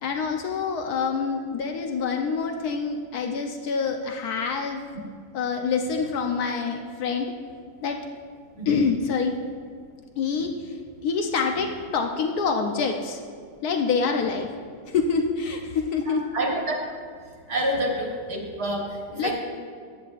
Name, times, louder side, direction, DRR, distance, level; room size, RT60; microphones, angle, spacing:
voice 1, 0.0-4.9 5.3-7.3 7.8-8.0 8.7-9.4 10.2-13.2 13.6-14.5 14.9-16.2 19.1-19.3, left 5 dB, 75° left, 3 dB, 1.2 m, -26 dB
voice 2, 16.1-16.8 17.5-19.3, right 1 dB, 80° right, 0 dB, 2.0 m, -28 dB
14.5 x 9.5 x 2.5 m, 2.1 s
omnidirectional pair, 1.7 m